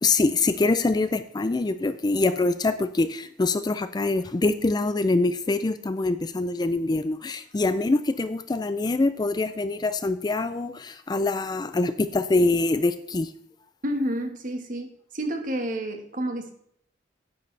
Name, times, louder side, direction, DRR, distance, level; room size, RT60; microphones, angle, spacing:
voice 1, 0.0-13.3, left 3 dB, 20° left, 12 dB, 0.4 m, -24 dB
voice 2, 13.8-16.5, right 1 dB, 45° right, 5 dB, 1.5 m, -30 dB
10.5 x 9.1 x 3.3 m, 0.68 s
head